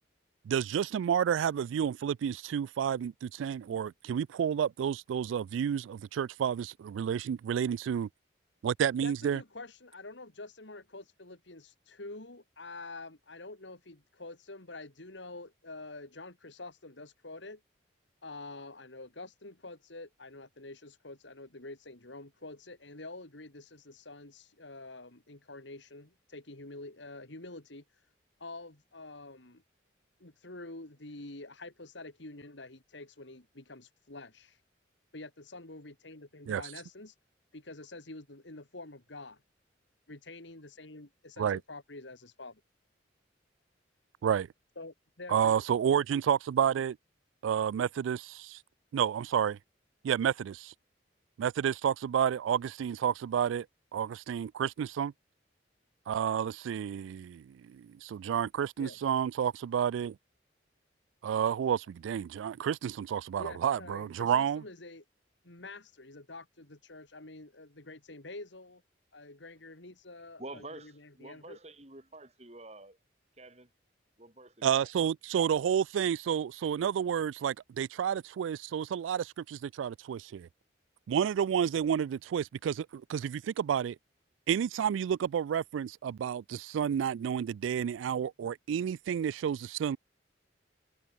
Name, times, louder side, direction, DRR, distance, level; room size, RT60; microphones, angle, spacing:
voice 1, 0.5-8.1 8.6-9.4 36.5-36.6 41.4-41.6 44.2-44.5 45.3-47.0 47.4-48.6 48.9-49.6 50.0-50.7 51.4-53.7 53.9-55.1 56.1-60.2 61.2-64.6 74.6-80.5 81.1-84.0 84.5-90.0, right 8 dB, 85° right, 0.3 m, -30 dB
voice 2, 9.0-17.6 18.2-28.1 28.4-29.6 30.2-34.6 35.1-37.2 37.5-39.4 40.1-42.6 44.8-45.6 50.2-50.3 58.8-59.0 63.4-65.0 65.4-68.8 69.1-71.6, left 2 dB, 75° left, 2.8 m, -47 dB
voice 3, 70.4-73.0 73.4-73.7 74.2-74.9, right 2 dB, 35° right, 3.8 m, -48 dB
head